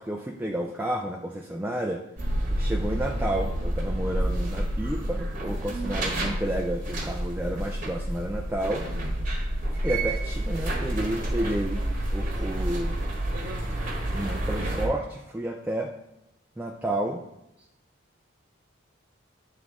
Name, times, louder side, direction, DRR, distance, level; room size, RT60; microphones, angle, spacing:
voice 1, 0.0-2.0 2.6-8.9 9.8-11.8 12.1-13.0 14.1-15.9 16.6-17.2, right 1 dB, 10° right, 0 dB, 0.3 m, -31 dB
sound 1, 2.2-14.9, right 1 dB, 40° right, 1.1 m, -29 dB
8.7 x 3.6 x 3.6 m, 0.85 s
head